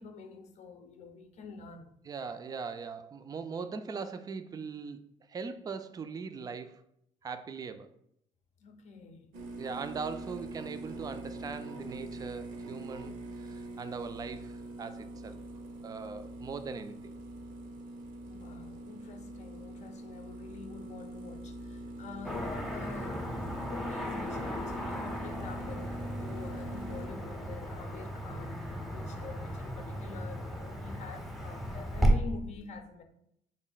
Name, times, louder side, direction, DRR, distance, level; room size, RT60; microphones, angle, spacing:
voice 1, 0.0-1.9 8.6-9.3 18.3-23.3 23.6-33.0, left 4 dB, 55° left, 0.6 m, -47 dB
voice 2, 2.1-5.0 5.3-6.8 7.2-7.9 9.6-15.4 15.8-17.1, right 5 dB, 25° right, 0.3 m, -40 dB
sound 1, 9.3-27.1, right 1 dB, 80° right, 0.6 m, -43 dB
Car passing by / Traffic noise roadway noise, 22.2-32.1, equal, ahead, 0.7 m, -35 dB
3.5 x 2.1 x 3.9 m
supercardioid pair, 65°, 14 cm